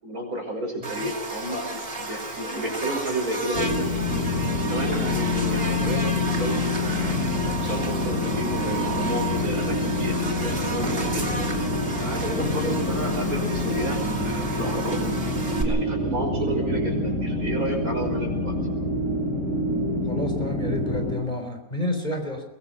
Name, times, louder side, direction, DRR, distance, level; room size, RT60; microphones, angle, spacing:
voice 1, 0.0-3.9 4.6-7.2 7.6-11.4 12.0-15.0 15.6-18.6, right 1 dB, 70° right, 2 dB, 6.2 m, -31 dB
Buzz, 0.8-15.6, right 3 dB, 40° right, 2.9 m, -33 dB
sound 1, 3.5-21.1, left 2 dB, 50° left, 5.5 m, -26 dB
voice 2, 12.4-13.0 20.1-22.4, left 1 dB, 30° left, 5 dB, 4.0 m, -30 dB
22.5 x 21.5 x 5.7 m, 0.90 s
omnidirectional pair, 1.6 m